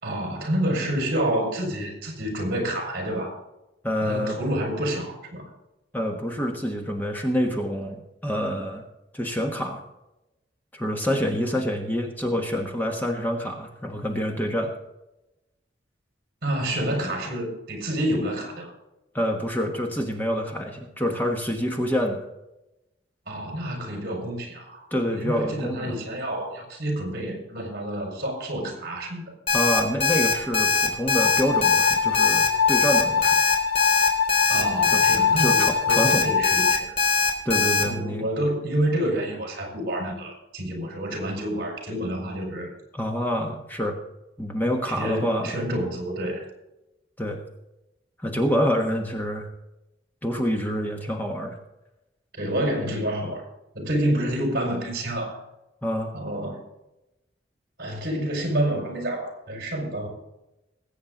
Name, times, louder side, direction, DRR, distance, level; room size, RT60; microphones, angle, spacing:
voice 1, 0.0-3.3 4.0-5.5 16.4-18.7 23.3-29.2 34.5-36.9 37.8-42.7 44.9-46.5 52.4-53.4 53.8-55.4 56.1-56.6 57.8-60.1, right 1 dB, 55° right, 1 dB, 5.2 m, -28 dB
voice 2, 3.8-4.4 5.9-8.8 9.1-9.8 10.7-14.7 19.1-22.2 24.9-26.0 29.5-33.4 34.9-35.0 35.4-36.3 37.4-38.2 42.9-44.0 44.4-45.6 47.2-47.4 48.2-49.5 50.2-51.6 52.8-53.0 55.8-56.1, equal, 10° left, 2 dB, 1.3 m, -27 dB
Alarm, 29.5-37.8, left 4 dB, 35° left, 3.0 m, -21 dB
sound 1, 31.1-36.7, left 7 dB, 60° left, 0.6 m, -24 dB
20.5 x 8.7 x 3.9 m, 0.93 s
head